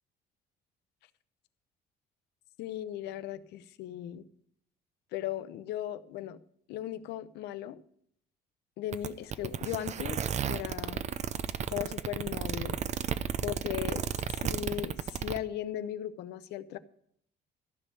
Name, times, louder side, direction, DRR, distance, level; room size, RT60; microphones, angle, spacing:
voice 1, 2.6-4.2 5.1-6.4 6.7-7.8 8.8-11.0 11.7-12.8 13.4-16.8, left 12 dB, 85° left, 13 dB, 0.8 m, -37 dB
sound 1, 8.9-15.4, right 8 dB, 40° right, 0.7 m, -33 dB
15.0 x 5.4 x 9.3 m, 0.66 s
cardioid pair, 110°, 17 cm